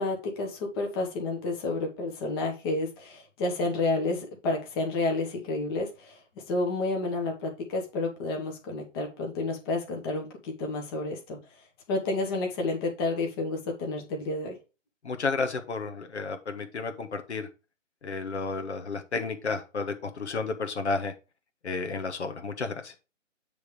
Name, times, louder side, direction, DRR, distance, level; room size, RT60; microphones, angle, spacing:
voice 1, 0.0-6.2 6.5-11.4 11.9-14.6, left 2 dB, 20° left, 1 dB, 1.1 m, -30 dB
voice 2, 15.0-17.5 18.0-21.1 21.6-22.9, left 4 dB, 60° left, 5 dB, 1.1 m, -32 dB
7.9 x 3.5 x 4.7 m, 0.31 s
figure-of-eight pair, 140°, 38 cm